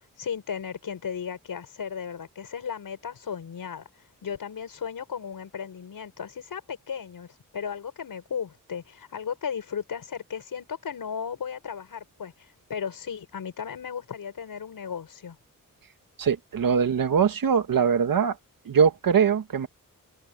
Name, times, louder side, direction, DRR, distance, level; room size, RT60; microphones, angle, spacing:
voice 1, 0.2-3.9 4.2-15.4, left 7 dB, 85° left, 6.8 m, -35 dB
voice 2, 16.2-18.4 18.7-19.7, right 7 dB, 80° right, 2.0 m, -22 dB
wide cardioid pair, 140°, 33 cm